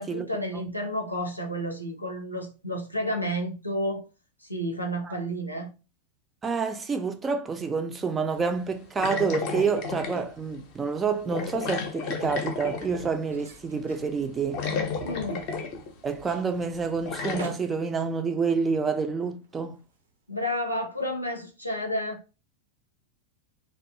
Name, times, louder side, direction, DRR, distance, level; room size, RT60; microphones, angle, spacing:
voice 1, 0.0-4.0 4.4-5.7 15.0-15.5 20.3-22.2, equal, 90° left, 0.5 m, -31 dB
voice 2, 6.4-14.7 16.0-19.8, right 5 dB, 20° right, 0.3 m, -28 dB
sound 1, 9.0-10.3 11.3-13.2 14.2-14.3 14.5-15.9 16.3-16.4 17.1-17.4, left 5 dB, 40° left, 0.6 m, -32 dB
sound 2, 10.6-20.8, right 3 dB, 65° right, 0.6 m, -50 dB
Thunder, 12.2-17.2 17.7-17.8 19.1-19.2, right 3 dB, 90° right, 0.9 m, -50 dB
2.5 x 2.2 x 2.6 m
figure-of-eight pair, 90°, 0 cm